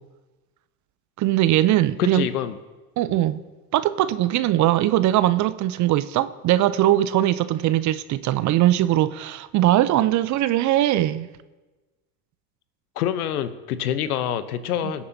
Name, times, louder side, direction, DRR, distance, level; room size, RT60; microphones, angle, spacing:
voice 1, 1.2-2.3 3.0-3.4 3.7-11.3 14.8-14.9, right 14 dB, 40° right, 0.5 m, -20 dB
voice 2, 2.0-2.6 3.1-3.2 13.0-15.1, left 10 dB, 80° left, 0.9 m, -26 dB
21.5 x 8.5 x 2.7 m
hypercardioid pair, 80°, 44 cm